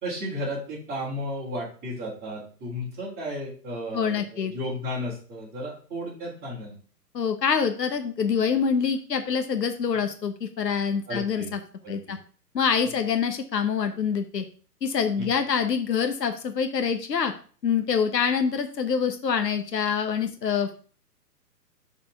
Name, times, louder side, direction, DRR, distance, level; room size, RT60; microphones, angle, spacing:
voice 1, 0.0-6.8 11.1-11.5 11.8-12.0 15.2-15.3, equal, 20° right, -5 dB, 3.2 m, -33 dB
voice 2, 3.9-4.5 7.1-11.6 11.9-12.2 12.5-14.4 14.8-17.3 17.6-20.7, left 6 dB, 85° left, 7 dB, 1.0 m, -25 dB
12.5 x 4.3 x 3.5 m, 0.41 s
hypercardioid pair, 140°, 48 cm